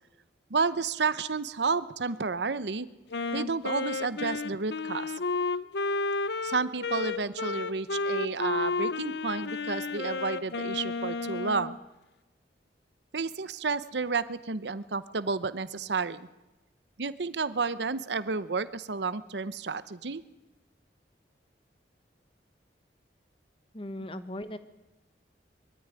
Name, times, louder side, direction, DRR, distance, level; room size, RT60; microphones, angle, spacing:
voice 1, 0.5-2.9 3.3-5.1 6.4-11.7 13.1-16.3 17.0-20.2, right 4 dB, 75° right, 14 dB, 0.8 m, -31 dB
Wind instrument woodwind instrument, 3.1-11.8, left 3 dB, 75° left, 0.8 m, -32 dB
voice 2, 23.7-24.6, left 1 dB, 30° left, 11 dB, 1.2 m, -38 dB
22.0 x 13.5 x 9.7 m, 1.0 s
head